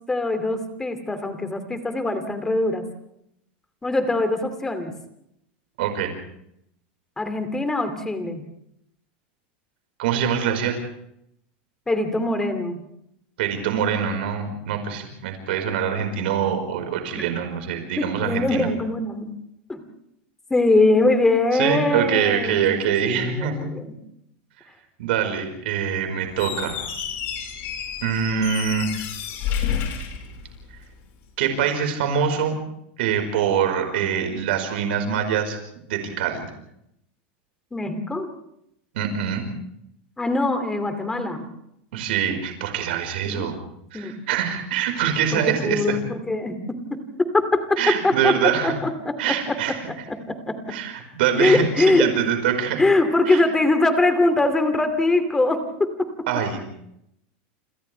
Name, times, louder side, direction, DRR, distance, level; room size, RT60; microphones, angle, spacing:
voice 1, 0.1-2.8 3.8-4.9 7.2-8.4 11.9-12.8 17.2-17.3 18.0-19.4 19.7-19.8 20.5-23.9 37.7-38.3 40.2-41.5 43.3-43.5 43.9-44.2 45.3-48.3 48.6-49.6 50.1-50.6 51.4-52.1 52.8-56.1, left 2 dB, 10° left, 8 dB, 2.5 m, -22 dB
voice 2, 5.8-6.1 10.0-10.8 13.4-18.7 21.5-23.7 25.0-26.8 28.0-28.9 31.4-32.5 33.0-35.6 35.9-36.5 38.9-39.5 41.9-43.5 43.9-46.0 47.8-48.7 49.2-49.8 50.7-52.8 53.3-53.4 56.3-56.6, right 8 dB, 75° right, 5 dB, 4.9 m, -24 dB
Squeak, 26.3-30.9, left 8 dB, 40° left, 4.9 m, -30 dB
29.0 x 27.0 x 3.4 m, 0.76 s
supercardioid pair, 155°, 6 cm